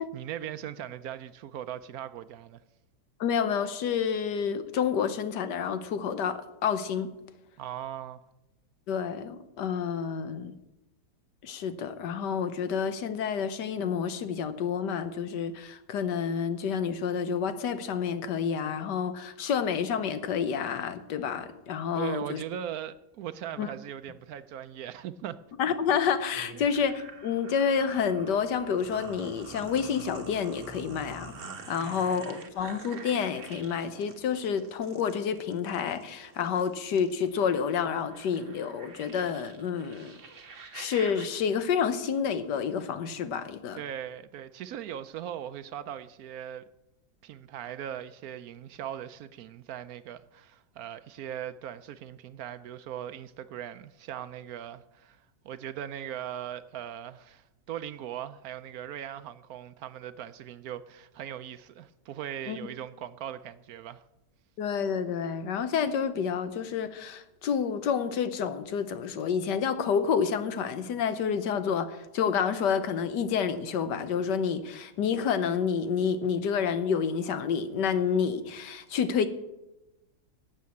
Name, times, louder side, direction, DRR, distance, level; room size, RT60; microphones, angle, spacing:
voice 1, 0.0-2.6 7.6-8.2 22.0-25.4 26.5-26.7 31.7-32.3 43.7-46.6 47.2-64.0, right 10 dB, 70° right, 1.0 m, -39 dB
voice 2, 3.2-7.1 8.9-10.6 11.4-22.4 23.6-23.7 25.6-31.3 31.7-40.2 40.7-43.8 62.5-62.6 64.6-79.3, left 7 dB, 85° left, 1.6 m, -29 dB
sound 1, 26.3-41.3, right 4 dB, 50° right, 1.5 m, -47 dB
12.5 x 7.5 x 8.4 m
omnidirectional pair, 1.8 m